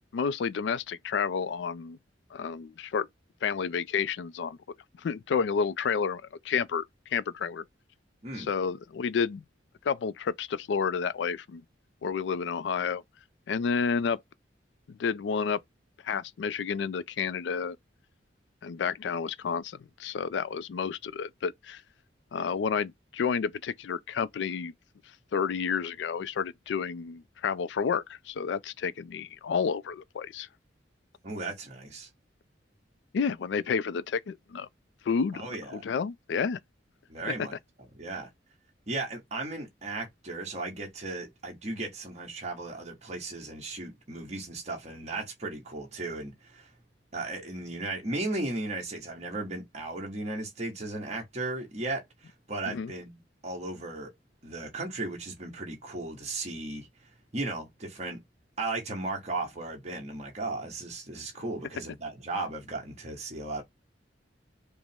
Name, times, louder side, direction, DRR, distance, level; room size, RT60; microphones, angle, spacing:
voice 1, 0.1-2.0 2.3-3.1 3.4-4.6 5.0-6.8 7.1-7.6 8.4-9.4 9.8-11.6 12.0-13.0 13.5-14.2 14.9-15.6 16.0-17.8 18.6-21.8 22.3-24.7 25.3-30.5 33.1-34.7 35.1-35.4 35.7-36.6 37.3-37.5 52.7-52.9, left 6 dB, 70° left, 0.3 m, -30 dB
voice 2, 31.2-32.1 35.3-35.9 37.1-37.5 37.9-38.3 38.9-46.7 47.1-54.1 54.4-56.9 57.3-58.2 58.6-63.6, right 2 dB, 40° right, 1.3 m, -36 dB
5.1 x 2.0 x 3.5 m
head